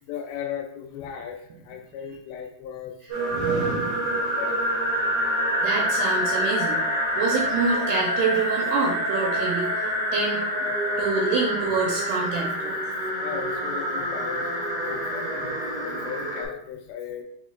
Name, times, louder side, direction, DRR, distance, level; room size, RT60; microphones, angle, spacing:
voice 1, 0.0-3.7 4.4-4.6 13.2-17.2, left 8 dB, 80° left, 3 dB, 2.4 m, -37 dB
sound 1, 3.1-16.4, equal, 45° right, 0.7 m, -26 dB
voice 2, 3.3-4.2 5.6-6.8 7.2-9.8 10.1-10.5 11.0-12.7, right 4 dB, 80° right, -2 dB, 2.1 m, -26 dB
6.3 x 3.5 x 2.4 m, 0.73 s
omnidirectional pair, 4.4 m